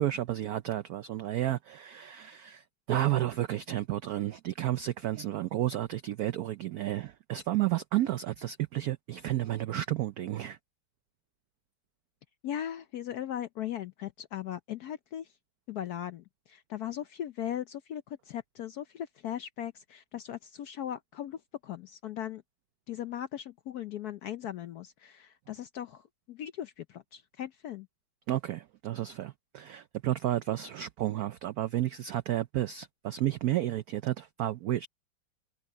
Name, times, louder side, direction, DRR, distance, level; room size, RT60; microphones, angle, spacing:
voice 1, 0.0-10.6 28.3-34.9, right 13 dB, 85° right, 0.8 m, -31 dB
voice 2, 12.4-15.3 15.7-22.4 22.9-27.9, left 10 dB, 70° left, 0.9 m, -38 dB
omnidirectional pair, 2.2 m